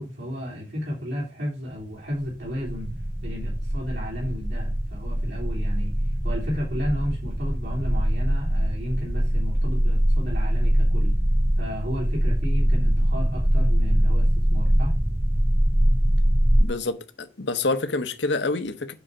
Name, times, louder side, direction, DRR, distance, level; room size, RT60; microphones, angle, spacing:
voice 1, 0.0-2.9 3.2-11.1 11.6-14.9, equal, 75° right, 3.5 m, -33 dB
sound 1, 2.2-16.6, equal, 5° right, 0.4 m, -22 dB
voice 2, 16.6-18.9, left 3 dB, 80° left, 1.2 m, -27 dB
9.5 x 4.2 x 6.7 m
head